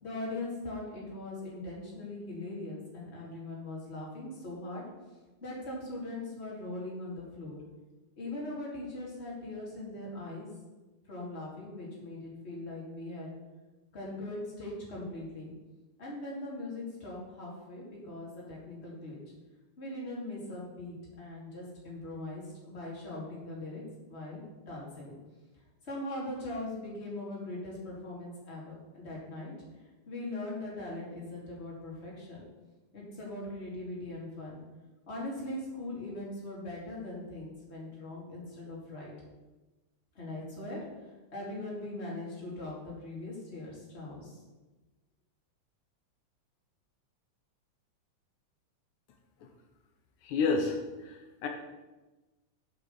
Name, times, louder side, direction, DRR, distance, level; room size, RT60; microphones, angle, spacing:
voice 1, 0.0-4.8 5.4-7.6 8.2-10.5 11.0-13.3 13.9-15.5 16.0-19.2 19.8-23.8 24.1-25.1 25.8-32.4 32.9-34.6 35.1-39.1 40.1-44.4, left 2 dB, 20° left, -4 dB, 2.6 m, -40 dB
voice 2, 50.2-51.5, left 4 dB, 80° left, 3 dB, 2.3 m, -30 dB
7.9 x 6.0 x 6.9 m, 1.1 s
omnidirectional pair, 3.5 m